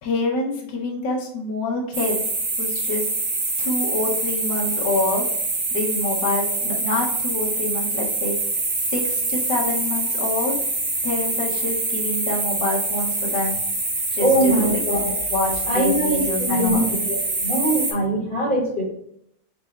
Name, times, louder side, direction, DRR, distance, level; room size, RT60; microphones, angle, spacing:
voice 1, 0.0-2.2 2.6-3.1 3.6-5.2 5.7-8.3 8.9-10.6 11.0-13.5 14.1-14.8 15.3-16.8, left 2 dB, 65° left, -1 dB, 1.7 m, -26 dB
sound 1, 1.9-17.9, right 2 dB, 45° right, 1.2 m, -25 dB
voice 2, 14.2-15.2 15.6-18.8, right 1 dB, 25° left, -5 dB, 1.5 m, -22 dB
4.4 x 2.6 x 4.0 m, 0.71 s
omnidirectional pair, 2.2 m